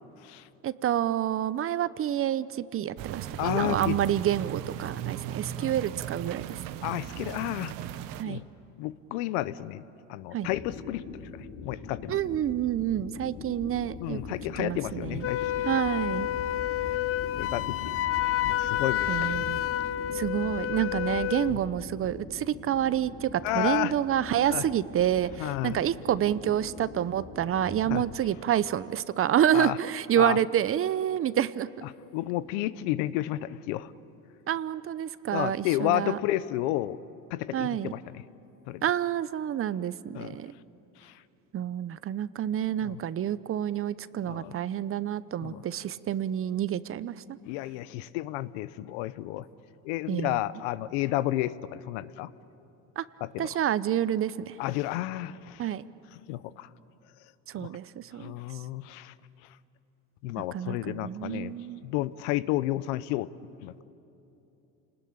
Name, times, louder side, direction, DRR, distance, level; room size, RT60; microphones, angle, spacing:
voice 1, 0.6-6.6 8.2-8.4 10.3-10.5 12.1-14.2 14.6-15.3 15.6-16.3 19.1-19.6 20.1-31.7 34.5-36.2 37.5-37.9 38.8-40.5 41.5-47.4 50.1-50.4 53.0-53.1 53.4-54.6 55.6-55.8 57.5-58.3 60.5-61.8, right 10 dB, 40° right, 17 dB, 0.7 m, -28 dB
sound 1, 3.0-8.2, right 10 dB, 75° right, 1.1 m, -37 dB
voice 2, 3.4-4.0 5.6-5.7 6.8-7.7 8.2-8.4 8.8-9.8 10.1-11.0 11.3-12.2 12.9-13.0 14.0-15.7 17.4-18.0 18.2-19.3 21.5-21.6 23.4-23.9 24.5-24.6 25.4-25.8 27.9-28.0 29.5-29.8 30.2-30.4 32.1-33.9 35.3-37.0 37.3-38.2 38.7-38.8 40.1-40.3 41.0-41.1 42.8-43.0 44.2-44.5 45.4-45.6 47.5-49.5 49.8-52.3 53.2-53.5 54.6-55.6 56.3-56.7 57.5-57.7 58.2-59.1 60.2-61.6 61.8-63.3 63.6-63.8, left 15 dB, 90° left, 16 dB, 0.8 m, -31 dB
sound 2, 10.4-28.2, left 4 dB, 70° left, 4.1 m, -43 dB
Wind instrument woodwind instrument, 15.2-21.6, left 13 dB, 40° left, 0.5 m, -29 dB
29.0 x 19.5 x 8.7 m, 2.9 s
supercardioid pair, 100°, 34 cm